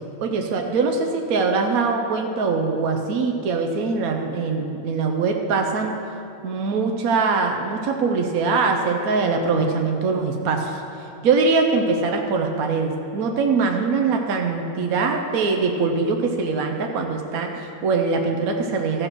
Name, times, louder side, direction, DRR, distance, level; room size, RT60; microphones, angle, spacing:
voice 1, 0.2-5.9 6.4-10.8 11.2-19.1, right 4 dB, 70° right, 3 dB, 0.8 m, -22 dB
14.5 x 5.3 x 6.0 m, 2.7 s
omnidirectional pair, 2.4 m